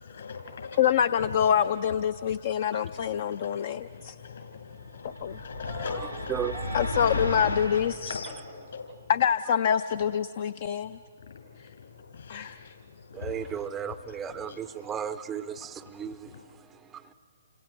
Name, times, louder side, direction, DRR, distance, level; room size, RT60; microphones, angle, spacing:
voice 1, 0.0-0.8 1.4-1.5 2.3-2.4 2.8-2.9 3.3-6.3 8.0-9.1 10.8-11.9 12.1-13.7 14.5-14.6 16.3-16.4, left 5 dB, 60° left, 5.7 m, -41 dB
voice 2, 0.8-4.2 5.2-5.4 6.7-8.1 9.1-11.0 12.3-12.7, left 8 dB, 45° left, 0.5 m, -26 dB
sound 1, 5.1-8.0, left 2 dB, 80° left, 1.4 m, -33 dB
voice 3, 5.7-6.9 13.1-17.0, right 8 dB, 15° right, 0.5 m, -36 dB
30.0 x 26.0 x 4.6 m
figure-of-eight pair, 125°, 0 cm